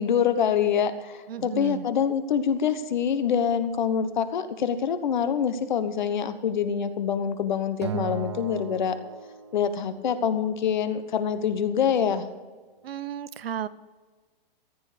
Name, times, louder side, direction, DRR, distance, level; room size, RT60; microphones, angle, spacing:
voice 1, 0.0-9.0 9.5-12.3, left 7 dB, 50° left, 11 dB, 1.2 m, -25 dB
voice 2, 1.3-1.8 12.8-13.7, right 9 dB, 80° right, 16 dB, 0.8 m, -33 dB
Acoustic guitar, 7.8-10.2, right 7 dB, 30° right, 0.4 m, -36 dB
14.5 x 9.8 x 5.1 m, 1.4 s
hypercardioid pair, 180°, 29 cm